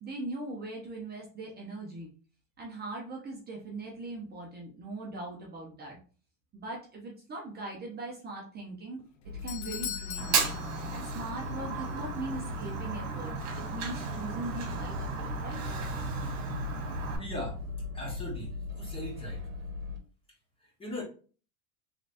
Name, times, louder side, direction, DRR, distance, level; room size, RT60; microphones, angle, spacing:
voice 1, 0.0-2.1 2.6-6.0 6.5-9.0 9.4-10.5 10.9-15.6, right 2 dB, 25° right, -2 dB, 0.8 m, -40 dB
Doorbell, 9.0-11.5 11.8-11.9 12.6-12.7, left 10 dB, 45° left, 0.5 m, -41 dB
sound 1, 9.2-20.0, left 4 dB, 90° right, 0.8 m, -40 dB
Fire, 10.2-17.2, right 5 dB, 60° right, 1.4 m, -34 dB
voice 2, 17.2-17.6 17.9-19.5 20.6-21.0, equal, 15° left, -1 dB, 1.1 m, -39 dB
3.2 x 3.0 x 2.6 m, 0.39 s
supercardioid pair, 130°, 40 cm